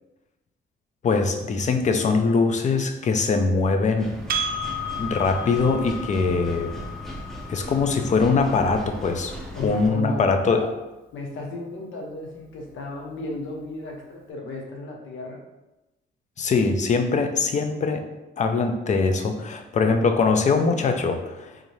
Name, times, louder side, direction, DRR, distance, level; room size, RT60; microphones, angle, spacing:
voice 1, 1.0-4.1 4.9-6.7 7.5-9.3 9.6-10.6 16.4-18.1 18.4-21.6, left 4 dB, 40° left, 6 dB, 0.4 m, -22 dB
sound 1, 4.0-9.9, left 1 dB, ahead, 0.8 m, -37 dB
Percussion, 4.3-9.1, equal, 45° right, 0.6 m, -33 dB
voice 2, 9.5-10.7 11.1-15.4, left 2 dB, 75° left, 0 dB, 0.8 m, -34 dB
3.7 x 2.6 x 3.1 m, 1.0 s
cardioid pair, 90°, 20 cm